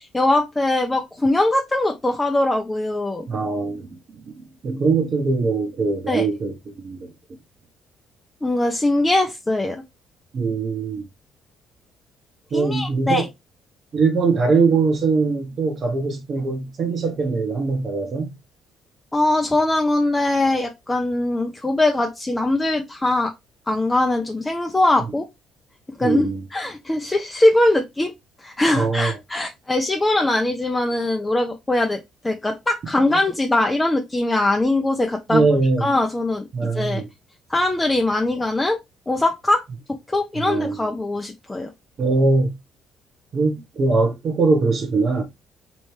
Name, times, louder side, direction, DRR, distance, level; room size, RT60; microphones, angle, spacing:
voice 1, 0.0-3.3 6.1-6.2 8.4-9.8 12.5-13.3 19.1-23.3 23.7-25.2 26.0-28.1 28.4-32.0 32.2-35.5 35.8-37.0 37.5-38.8 39.1-39.6 39.9-41.7, left 2 dB, 20° left, 0.7 m, -21 dB
voice 2, 3.3-7.1 10.3-11.1 12.5-13.2 13.9-18.3 26.0-26.4 28.7-29.1 35.3-35.9 36.5-37.1 40.4-40.8 42.0-42.5 43.3-45.2, right 4 dB, 50° right, 1.0 m, -21 dB
3.1 x 3.1 x 3.2 m
hypercardioid pair, 50°, 0 cm